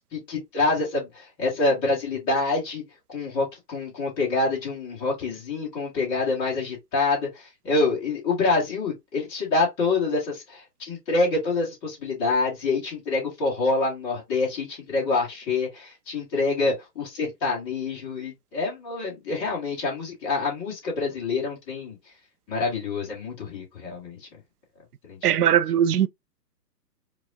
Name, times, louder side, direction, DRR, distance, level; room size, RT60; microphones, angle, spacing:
voice 1, 0.1-2.8 3.1-7.3 7.6-22.0 22.5-24.2 25.1-25.2, left 3 dB, 10° left, 0.6 m, -26 dB
voice 2, 25.2-26.1, right 10 dB, 65° right, 0.5 m, -20 dB
4.7 x 2.2 x 2.4 m
hypercardioid pair, 140°, 50 cm